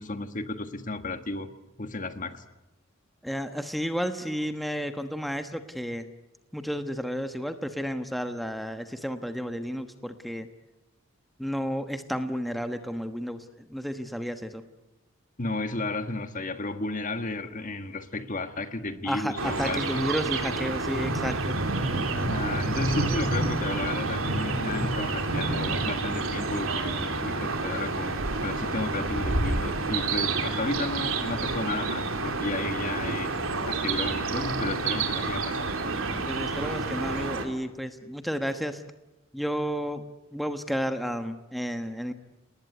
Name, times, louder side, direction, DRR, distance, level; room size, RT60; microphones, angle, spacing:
voice 1, 0.0-1.5 1.8-2.4 15.4-20.1 22.2-33.3 33.7-35.8, left 2 dB, 40° left, 9 dB, 1.6 m, -33 dB
voice 2, 3.2-6.0 6.5-10.5 11.4-14.6 19.0-21.6 36.3-38.8 39.3-40.0 40.3-42.1, equal, ahead, 7 dB, 1.2 m, -32 dB
sound 1, 18.7-30.6, equal, 15° left, 2.9 m, -43 dB
sound 2, 19.4-37.5, right 3 dB, 80° right, 3.2 m, -30 dB
sound 3, 20.9-26.0, right 1 dB, 60° right, 5.3 m, -31 dB
29.5 x 19.5 x 9.6 m, 1.0 s
head